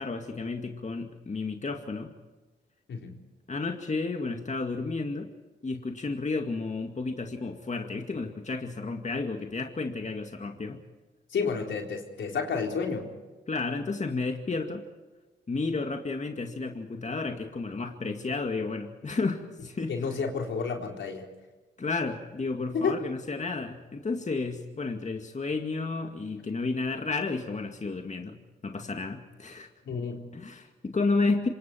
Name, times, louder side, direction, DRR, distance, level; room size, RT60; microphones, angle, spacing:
voice 1, 0.0-2.1 3.5-5.3 5.6-10.8 13.5-14.9 15.5-20.1 21.8-29.7 30.3-31.5, left 3 dB, 40° left, 4 dB, 2.2 m, -32 dB
voice 2, 11.3-13.1 19.9-21.3 22.7-23.0 29.9-30.3, left 5 dB, 80° left, 2 dB, 4.1 m, -30 dB
27.0 x 25.0 x 4.5 m, 1.2 s
cardioid pair, 70°, 19 cm